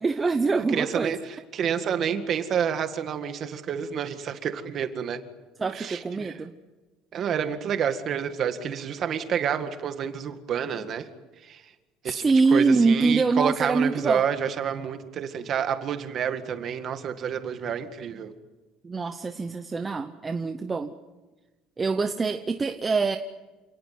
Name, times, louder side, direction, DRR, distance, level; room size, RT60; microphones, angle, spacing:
voice 1, 0.0-1.1 5.6-6.5 12.0-14.2 18.8-20.9 21.8-23.2, right 4 dB, 15° right, 7 dB, 0.8 m, -24 dB
voice 2, 0.6-5.2 5.7-6.3 7.1-11.1 11.4-11.7 12.0-12.2 12.5-18.3, right 8 dB, 35° right, 8 dB, 1.9 m, -29 dB
28.0 x 19.0 x 9.5 m, 1.2 s
cardioid pair, 175°, 0 cm